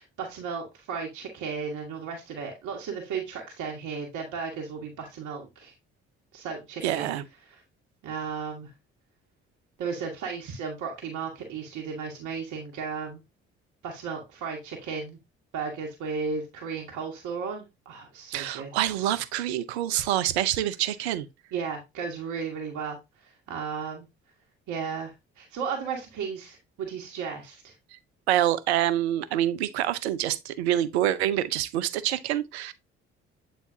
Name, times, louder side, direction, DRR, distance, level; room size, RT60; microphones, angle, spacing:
voice 1, 0.0-5.7 6.3-7.1 7.5-7.6 8.0-8.7 9.8-13.2 13.8-15.2 15.5-18.7 21.5-24.1 24.7-27.7, right 5 dB, 65° right, 1.5 m, -35 dB
voice 2, 6.8-7.2 18.3-21.3 28.3-32.7, right 12 dB, 85° right, 0.6 m, -26 dB
8.2 x 4.3 x 2.7 m
hypercardioid pair, 50°, 32 cm